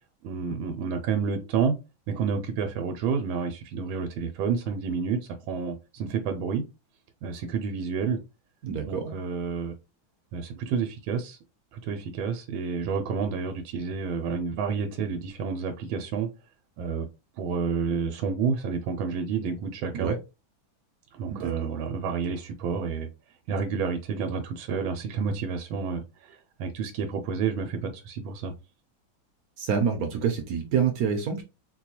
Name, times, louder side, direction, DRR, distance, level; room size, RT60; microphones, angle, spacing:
voice 1, 0.2-1.8 2.1-5.2 5.5-6.6 7.2-8.2 8.8-9.7 10.3-11.4 11.7-16.3 16.8-17.1 17.4-20.2 21.1-23.1 23.5-28.5, right 5 dB, 90° right, 1.4 m, -29 dB
voice 2, 8.6-9.1 19.9-20.2 21.3-21.7 29.6-31.4, right 7 dB, 70° right, 0.9 m, -27 dB
4.3 x 2.2 x 2.8 m
omnidirectional pair, 2.1 m